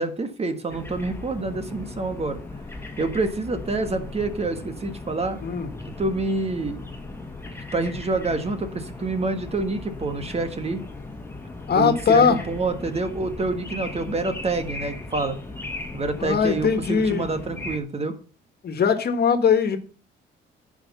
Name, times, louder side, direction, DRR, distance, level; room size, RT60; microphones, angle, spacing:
voice 1, 0.0-2.4 3.0-5.4 5.8-6.8 7.7-10.8 11.8-15.4 15.9-18.2, right 3 dB, 30° right, 8 dB, 1.6 m, -27 dB
sound 1, 0.7-17.8, left 2 dB, 10° left, 1.9 m, -37 dB
voice 2, 11.7-12.4 16.2-17.3 18.6-19.8, left 7 dB, 55° left, 8 dB, 1.7 m, -20 dB
10.0 x 5.2 x 7.0 m, 0.40 s
cardioid pair, 90°, 20 cm